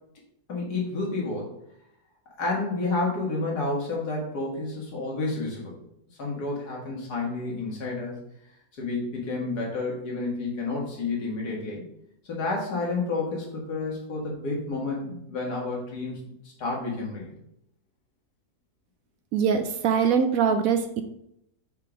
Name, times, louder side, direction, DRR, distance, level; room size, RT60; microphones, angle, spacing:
voice 1, 0.5-1.6 2.4-5.7 6.2-8.2 8.8-11.8 12.3-16.2 16.6-17.3, left 3 dB, 75° left, -2 dB, 2.3 m, -30 dB
voice 2, 19.3-21.0, right 6 dB, 70° right, 7 dB, 0.9 m, -23 dB
5.6 x 3.7 x 4.9 m, 0.76 s
omnidirectional pair, 1.7 m